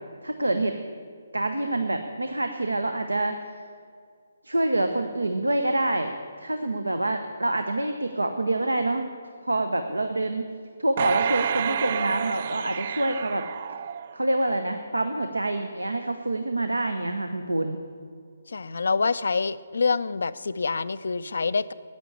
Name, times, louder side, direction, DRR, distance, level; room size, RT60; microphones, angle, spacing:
voice 1, 0.2-0.8 1.3-3.4 4.4-6.1 6.4-9.1 9.4-10.5 10.8-13.4 14.1-17.8, right 2 dB, 75° right, 7 dB, 0.8 m, -26 dB
sound 1, 11.0-14.4 14.9-15.0, right 8 dB, 40° right, 0.4 m, -29 dB
voice 2, 18.5-21.7, left 4 dB, 60° left, 16 dB, 0.4 m, -26 dB
10.5 x 8.9 x 9.8 m, 2.1 s
figure-of-eight pair, 140°, 0 cm